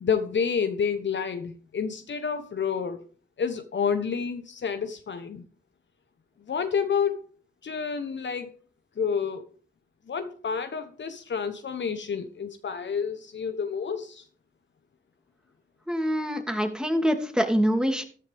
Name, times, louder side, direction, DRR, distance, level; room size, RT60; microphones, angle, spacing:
voice 1, 0.0-3.0 3.4-5.4 6.5-7.2 7.6-8.5 9.0-9.5 10.1-14.2, left 6 dB, 65° left, 1.1 m, -29 dB
voice 2, 15.9-18.0, equal, 5° right, 2.7 m, -25 dB
14.0 x 10.5 x 3.6 m
cardioid pair, 50°, 20 cm